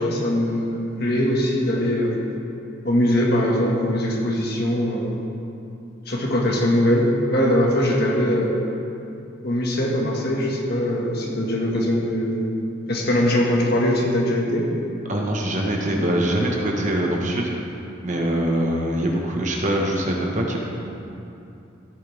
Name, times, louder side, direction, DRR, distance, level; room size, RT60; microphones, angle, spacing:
voice 1, 0.0-2.3 2.8-5.2 6.1-8.6 9.4-12.4 12.9-14.7, equal, 55° left, -2 dB, 1.8 m, -21 dB
voice 2, 15.1-17.5 18.0-20.6, right 1 dB, 40° right, -1 dB, 1.3 m, -23 dB
15.5 x 9.1 x 3.6 m, 2.7 s
head